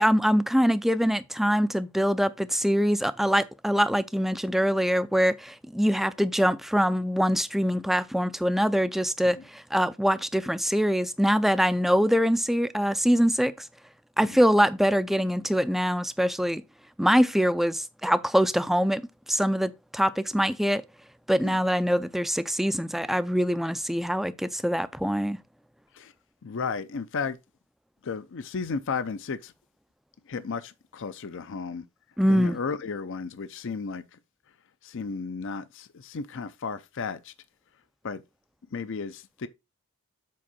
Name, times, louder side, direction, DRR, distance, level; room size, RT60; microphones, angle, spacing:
voice 1, 0.0-13.7 14.2-16.6 17.0-19.0 19.3-20.8 21.3-25.4 32.2-32.6, equal, ahead, 0.3 m, -24 dB
voice 2, 26.4-27.4 28.0-29.5 30.3-31.8 32.3-34.0 34.8-37.3 38.0-38.2 38.7-39.5, left 5 dB, 60° left, 0.5 m, -34 dB
7.6 x 4.5 x 4.2 m
head